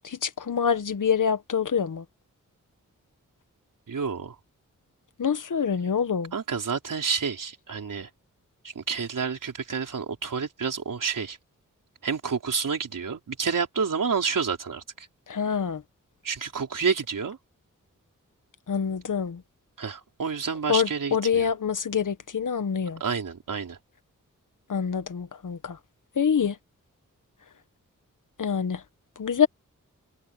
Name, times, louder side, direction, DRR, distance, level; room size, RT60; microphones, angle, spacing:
voice 1, 0.0-2.0 5.2-6.3 15.3-15.8 18.7-19.4 20.7-23.0 24.7-25.8 26.1-26.6 28.4-28.8 29.2-29.5, left 7 dB, 70° left, 1.6 m, -26 dB
voice 2, 3.9-4.3 6.3-8.1 8.8-11.4 12.0-15.1 16.2-17.4 19.8-21.5 23.0-23.8, right 5 dB, 75° right, 4.1 m, -29 dB
cardioid pair, 45°, 32 cm